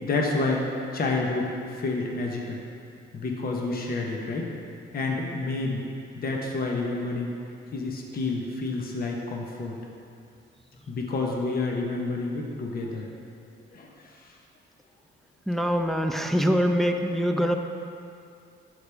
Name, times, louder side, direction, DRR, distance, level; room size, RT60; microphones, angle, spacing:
voice 1, 0.0-0.7 0.9-2.6 3.1-4.5 4.9-5.8 6.2-7.3 7.7-9.7 10.9-13.1 13.7-13.9, left 3 dB, 50° left, 0 dB, 1.1 m, -29 dB
voice 2, 15.5-17.6, equal, ahead, 3 dB, 0.6 m, -24 dB
13.0 x 5.1 x 3.5 m, 2.4 s
cardioid pair, 90°, 20 cm